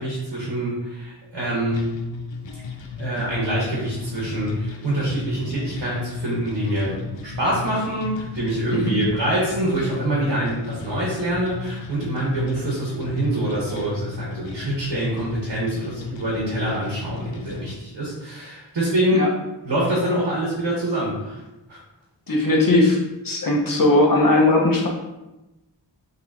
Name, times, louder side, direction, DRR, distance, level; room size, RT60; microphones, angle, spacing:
voice 1, 0.0-1.8 3.0-19.3 19.6-21.4 21.7-21.8, right 1 dB, 65° right, -5 dB, 1.2 m, -25 dB
sound 1, 1.7-17.7, left 4 dB, 85° left, 0.6 m, -34 dB
voice 2, 22.3-23.0 23.2-24.9, left 2 dB, 50° left, -2 dB, 1.0 m, -18 dB
5.5 x 3.1 x 2.7 m, 1.0 s
wide cardioid pair, 85°, 43 cm